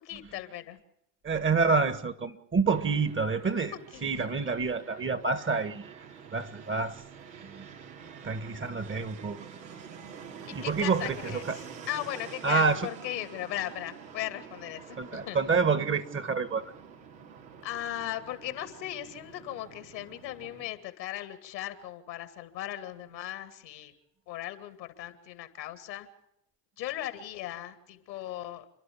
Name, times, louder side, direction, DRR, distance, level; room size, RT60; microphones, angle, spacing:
voice 1, 0.0-0.8 3.9-4.5 10.5-15.4 17.6-23.9 24.3-26.1 26.8-28.6, left 13 dB, 85° left, 10 dB, 2.5 m, -38 dB
voice 2, 1.2-3.7 4.0-5.9 6.3-7.0 7.4-7.7 8.2-9.5 10.5-11.4 12.4-12.9 15.0-16.7, right 4 dB, 25° right, 14 dB, 1.6 m, -28 dB
Fixed-wing aircraft airplane, 2.7-20.7, right 7 dB, 90° right, 2.9 m, -47 dB
30.0 x 11.5 x 8.5 m, 0.79 s
hypercardioid pair, 90°, 49 cm